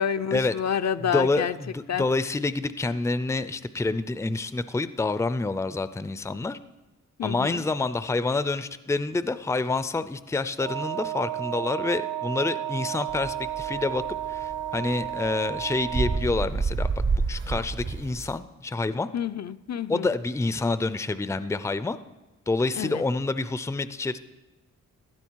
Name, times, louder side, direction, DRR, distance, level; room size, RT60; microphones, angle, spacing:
voice 1, 0.0-1.6 1.9-2.1 7.2-7.6 19.1-20.1 22.8-23.0, left 8 dB, 55° left, 0.5 m, -28 dB
voice 2, 1.1-6.6 7.2-14.0 14.3-16.9 17.3-19.1 19.9-22.0 22.5-24.2, left 3 dB, 10° left, 0.5 m, -27 dB
Wind instrument woodwind instrument, 10.6-16.3, right 11 dB, 70° right, 0.7 m, -32 dB
sound 1, 13.1-18.4, right 4 dB, 35° right, 0.7 m, -29 dB
17.0 x 12.0 x 4.6 m
wide cardioid pair, 100°, 32 cm